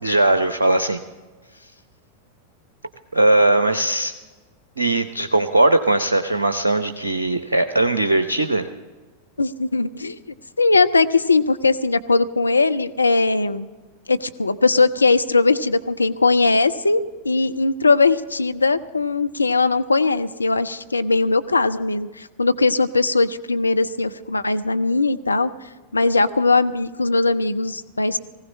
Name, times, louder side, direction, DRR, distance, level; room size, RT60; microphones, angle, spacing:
voice 1, 0.0-1.0 3.1-4.1 4.8-8.7, right 2 dB, 75° right, 9 dB, 0.7 m, -19 dB
voice 2, 9.4-10.2 10.6-13.7 14.1-25.5 25.9-28.2, left 3 dB, 80° left, 11 dB, 0.5 m, -19 dB
19.5 x 16.0 x 4.2 m, 1.3 s
figure-of-eight pair, 90°, 0 cm